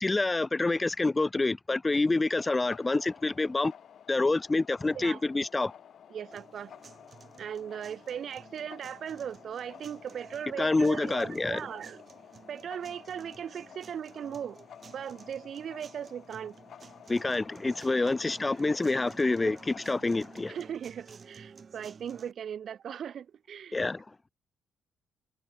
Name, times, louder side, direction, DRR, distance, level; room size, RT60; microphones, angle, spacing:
voice 1, 0.0-3.7 4.1-5.7 10.6-11.6 17.1-20.6 23.7-24.1, left 3 dB, 20° left, 0.3 m, -27 dB
sound 1, 2.4-20.8, left 9 dB, 60° left, 4.2 m, -53 dB
voice 2, 6.1-6.7 7.4-12.0 12.5-14.6 14.9-16.6 18.0-18.1 19.4-19.5 20.5-23.8, right 8 dB, 60° right, 1.6 m, -38 dB
sound 2, 6.3-22.3, right 5 dB, 40° right, 5.5 m, -53 dB
cardioid pair, 90°, 0 cm